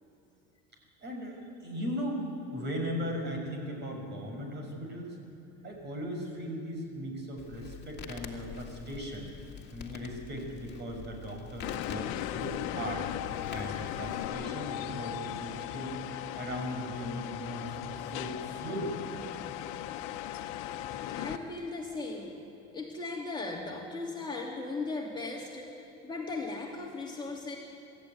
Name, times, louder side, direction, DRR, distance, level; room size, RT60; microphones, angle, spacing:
voice 1, 1.0-2.2 2.5-5.2 5.6-9.3 9.7-13.1 13.5-16.0 16.4-19.0, equal, 35° right, 2 dB, 6.1 m, -38 dB
Crackle, 7.4-14.3, left 7 dB, 35° left, 2.3 m, -47 dB
sound 1, 11.6-21.4, left 12 dB, 80° left, 1.2 m, -37 dB
voice 2, 21.2-22.4 22.7-27.6, left 3 dB, 15° left, -2 dB, 2.9 m, -37 dB
26.0 x 13.5 x 9.5 m, 2.8 s
cardioid pair, 130°, 29 cm